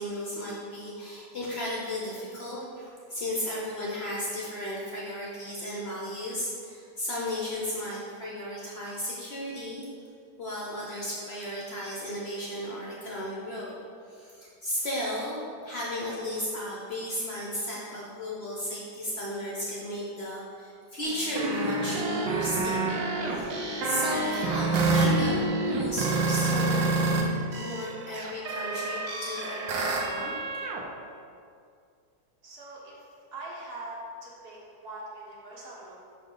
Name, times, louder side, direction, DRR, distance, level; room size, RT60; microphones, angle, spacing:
voice 1, 0.0-9.8 10.4-13.7 14.1-15.4 15.6-23.0 23.2-30.3, left 1 dB, 50° left, -4 dB, 0.7 m, -34 dB
sound 1, 21.0-27.2 27.5-30.8, right 3 dB, 80° right, 1.4 m, -28 dB
voice 2, 32.4-36.0, right 1 dB, 60° right, -4 dB, 1.5 m, -42 dB
5.6 x 4.6 x 3.8 m, 2.3 s
omnidirectional pair, 2.0 m